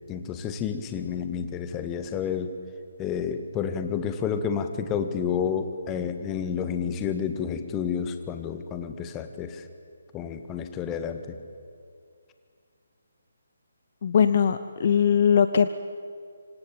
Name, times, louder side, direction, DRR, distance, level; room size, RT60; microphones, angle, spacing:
voice 1, 0.1-2.5 3.0-9.6 10.1-11.4, left 7 dB, 15° left, 8 dB, 1.7 m, -30 dB
voice 2, 14.0-15.7, left 7 dB, 40° left, 12 dB, 0.9 m, -20 dB
26.5 x 25.5 x 8.8 m, 2.2 s
figure-of-eight pair, 145°, 0 cm